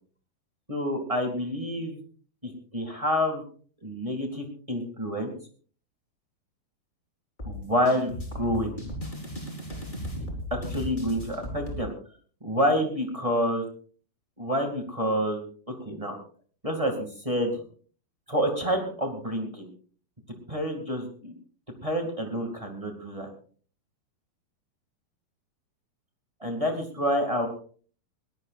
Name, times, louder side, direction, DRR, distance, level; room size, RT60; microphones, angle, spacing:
voice 1, 0.7-2.0 2.4-3.4 3.8-5.3 7.4-8.7 10.5-11.9 12.4-13.6 14.4-15.4 15.8-16.1 16.6-17.5 18.3-19.7 20.5-21.3 21.8-23.3 26.4-27.5, equal, 15° right, 3 dB, 1.5 m, -28 dB
sound 1, 7.4-11.8, left 1 dB, 10° left, 3.9 m, -36 dB
21.5 x 18.0 x 2.5 m, 0.44 s
omnidirectional pair, 4.4 m